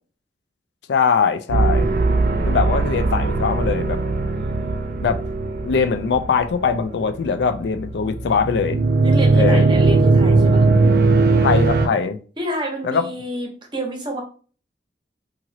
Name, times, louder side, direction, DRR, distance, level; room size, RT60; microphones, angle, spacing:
voice 1, 0.9-1.9 2.5-4.0 5.0-5.2 5.6-8.8 9.3-9.6 11.4-12.2 12.8-13.1, left 5 dB, 70° left, 0.4 m, -21 dB
sound 1, 1.5-11.9, right 3 dB, 55° right, 0.4 m, -19 dB
voice 2, 1.8-2.6 4.3-4.8 9.0-10.6 12.4-14.2, right 1 dB, 25° right, 0.7 m, -29 dB
2.9 x 2.5 x 2.7 m
head